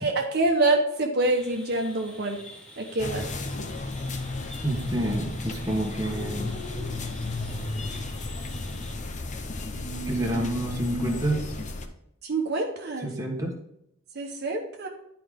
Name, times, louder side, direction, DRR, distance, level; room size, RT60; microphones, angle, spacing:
voice 1, 0.0-2.4 2.8-3.2 12.2-13.1 14.1-14.9, right 2 dB, 55° right, 2 dB, 1.1 m, -26 dB
sound 1, 1.2-9.0, left 1 dB, 5° left, 1.6 m, -47 dB
sound 2, 3.0-11.9, left 2 dB, 35° left, 0.7 m, -33 dB
voice 2, 4.6-6.5 10.0-11.5 13.0-13.5, right 1 dB, 15° right, 0 dB, 1.4 m, -28 dB
11.0 x 4.8 x 3.7 m, 0.76 s
head